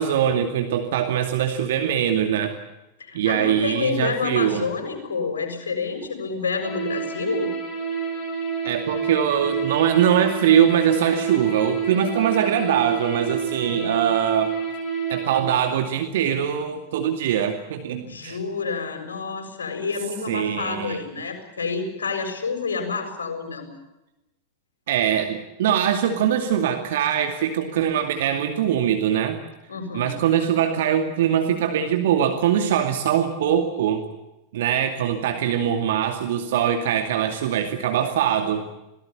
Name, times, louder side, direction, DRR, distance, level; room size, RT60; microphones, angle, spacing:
voice 1, 0.0-2.5 3.1-4.7 8.6-14.5 15.1-18.4 20.3-21.0 24.9-29.4 29.9-34.0 34.5-38.7, right 9 dB, 55° right, 6 dB, 2.3 m, -22 dB
voice 2, 3.0-7.5 13.5-13.9 18.0-23.7 29.7-30.1, left 5 dB, 70° left, 5 dB, 6.9 m, -29 dB
sound 1, 6.6-15.4, right 6 dB, 30° left, 7.2 m, -28 dB
27.5 x 19.0 x 8.4 m, 0.95 s
figure-of-eight pair, 90°, 0 cm